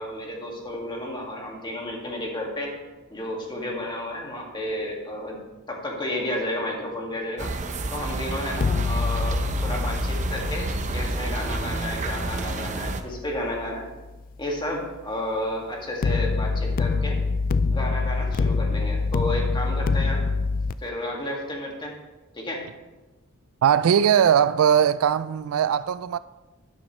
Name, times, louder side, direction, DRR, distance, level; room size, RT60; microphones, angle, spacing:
voice 1, 0.0-2.7 3.1-5.4 5.7-7.5 7.9-13.9 14.4-17.2 17.7-20.3 20.8-21.9 22.3-22.7, left 1 dB, 20° left, 1.9 m, -32 dB
sound 1, 7.4-13.0, right 2 dB, 35° right, 0.7 m, -30 dB
sound 2, 8.5-13.6 16.0-20.7, left 4 dB, 40° left, 0.3 m, -26 dB
voice 2, 23.6-26.2, right 8 dB, 70° right, 0.3 m, -20 dB
12.0 x 10.0 x 3.1 m
head